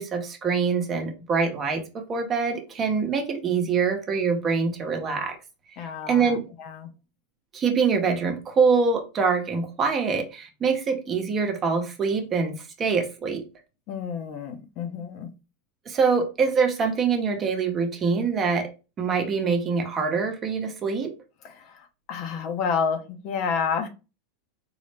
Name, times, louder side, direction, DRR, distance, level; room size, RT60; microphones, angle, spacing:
voice 1, 0.0-5.4 6.1-6.4 7.5-13.4 15.9-18.7 19.0-21.1, right 5 dB, 30° right, 0.8 m, -24 dB
voice 2, 5.8-6.9 13.9-15.3 21.4-23.9, left 6 dB, 50° left, 0.7 m, -30 dB
3.8 x 2.0 x 3.3 m
supercardioid pair, 125°, 0 cm